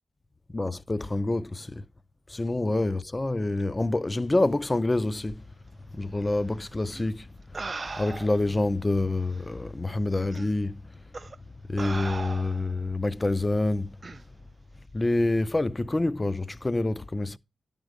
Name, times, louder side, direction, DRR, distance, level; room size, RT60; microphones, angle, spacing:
voice 1, 0.5-1.8 2.3-5.4 5.9-7.3 8.0-10.8 11.7-14.0 14.9-17.4, left 2 dB, 20° left, 0.4 m, -27 dB
sound 1, 6.9-7.0 7.5-8.5 9.4-9.5 10.3-10.5 11.1-11.4 11.8-12.7 14.0-14.2, right 3 dB, 40° right, 0.4 m, -37 dB
11.5 x 5.2 x 4.7 m
wide cardioid pair, 90°, 0 cm